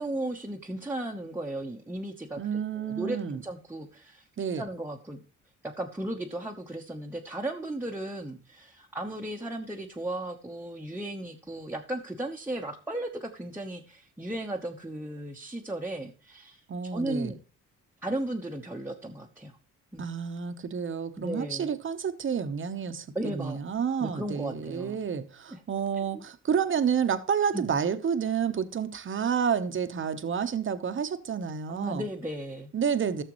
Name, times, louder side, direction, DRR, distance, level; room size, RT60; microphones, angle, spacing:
voice 1, 0.0-4.3 4.5-5.2 5.6-17.4 18.0-19.5 19.9-20.1 21.2-21.7 23.1-23.6 24.0-25.0 25.5-25.6 26.0-26.1 27.5-27.7 31.7-32.7, right 1 dB, 5° right, -2 dB, 1.1 m, -35 dB
voice 2, 2.4-3.4 4.4-4.6 16.7-17.3 20.0-32.0 32.7-33.2, right 7 dB, 40° right, 9 dB, 1.1 m, -29 dB
14.5 x 6.7 x 3.1 m, 0.37 s
cardioid pair, 90°, 30 cm